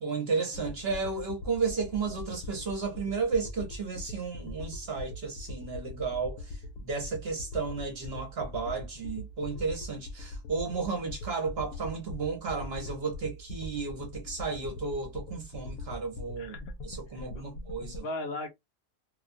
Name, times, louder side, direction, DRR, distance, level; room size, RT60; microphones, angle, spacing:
voice 1, 0.0-16.5 16.8-18.0, right 4 dB, 55° right, 0.9 m, -33 dB
sound 1, 0.5-18.0, left 2 dB, 80° left, 1.0 m, -42 dB
voice 2, 16.4-16.7 17.1-17.6 18.0-18.5, left 2 dB, 55° left, 0.8 m, -38 dB
2.5 x 2.2 x 2.5 m
omnidirectional pair, 1.4 m